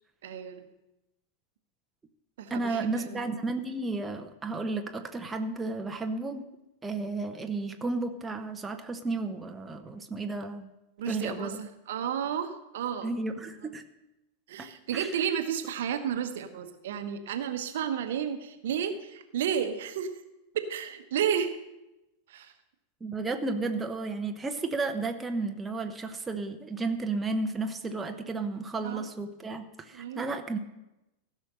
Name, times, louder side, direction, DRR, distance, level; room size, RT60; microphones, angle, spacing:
voice 1, 0.2-0.7 2.4-3.2 11.0-13.1 14.5-20.1 20.5-21.5 22.3-22.5 28.8-29.1 29.9-30.3, right 8 dB, 55° right, 8 dB, 1.0 m, -32 dB
voice 2, 2.5-6.5 6.8-10.7 11.1-11.6 13.0-13.8 14.6-15.1 23.0-30.6, right 3 dB, 15° right, 5 dB, 0.9 m, -33 dB
15.5 x 6.3 x 6.5 m, 0.95 s
figure-of-eight pair, 90°, 0 cm